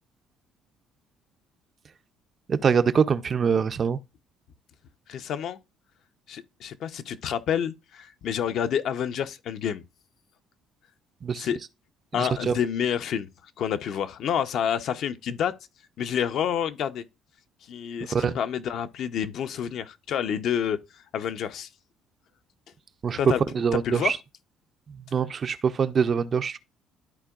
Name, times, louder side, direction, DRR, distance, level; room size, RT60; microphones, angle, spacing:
voice 1, 2.5-4.0 11.2-11.5 12.2-12.6 18.1-18.4 23.0-23.2 23.5-24.2 25.1-26.6, right 6 dB, 30° right, 0.4 m, -24 dB
voice 2, 5.1-5.6 6.3-9.8 11.4-11.6 12.1-13.3 13.6-15.5 16.0-17.0 17.7-20.8 21.1-21.7 23.2-23.4 23.7-24.1, left 8 dB, 50° left, 0.6 m, -28 dB
13.0 x 4.4 x 2.3 m
cardioid pair, 165°, 0 cm